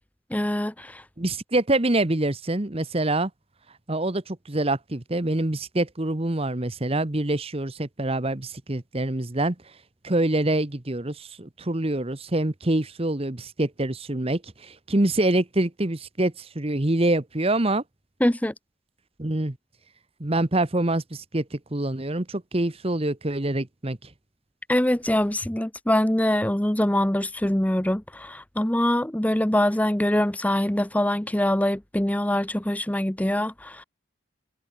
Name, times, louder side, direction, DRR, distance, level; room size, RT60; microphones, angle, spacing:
voice 1, 0.3-1.0 18.2-18.5 24.7-33.8, left 1 dB, 5° left, 0.7 m, -24 dB
voice 2, 1.2-3.3 3.9-9.5 10.0-17.8 19.2-19.6 20.2-24.0, right 1 dB, 25° right, 1.1 m, -25 dB
head